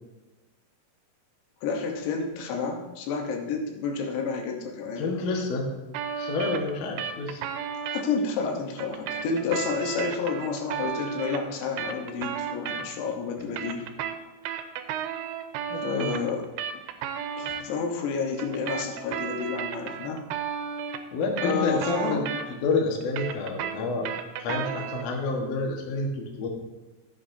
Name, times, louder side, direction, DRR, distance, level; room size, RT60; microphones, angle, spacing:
voice 1, 1.6-5.1 7.9-13.9 15.8-16.5 17.4-20.2 21.4-22.3, left 5 dB, 85° left, 2 dB, 3.4 m, -30 dB
voice 2, 5.0-5.7 6.2-7.4 13.4-13.5 15.7-16.1 21.1-24.1 24.4-26.5, left 3 dB, 60° left, 0 dB, 1.9 m, -29 dB
sound 1, 5.9-8.0 8.8-13.1 13.4-17.6 18.4-22.7 23.0-25.1, right 8 dB, 80° right, 2.5 m, -33 dB
14.5 x 8.4 x 2.7 m, 1.2 s
omnidirectional pair, 4.9 m